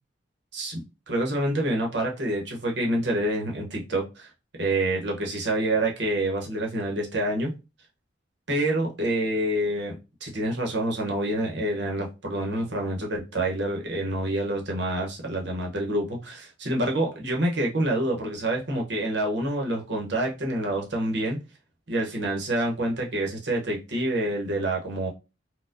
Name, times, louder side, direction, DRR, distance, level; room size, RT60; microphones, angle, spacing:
voice 1, 0.5-4.3 4.6-7.5 8.5-9.9 10.2-21.4 21.9-25.1, right 1 dB, 60° right, 0 dB, 0.8 m, -27 dB
4.2 x 2.2 x 2.5 m, 0.28 s
head